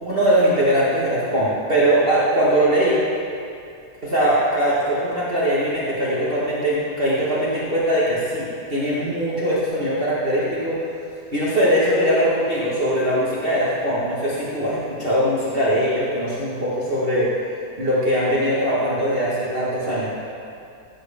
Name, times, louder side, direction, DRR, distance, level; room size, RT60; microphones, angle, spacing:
voice 1, 0.0-3.0 4.0-10.8 11.3-17.3 17.8-20.1, equal, 35° right, -8 dB, 1.6 m, -21 dB
14.0 x 7.8 x 3.4 m, 2.4 s
omnidirectional pair, 1.8 m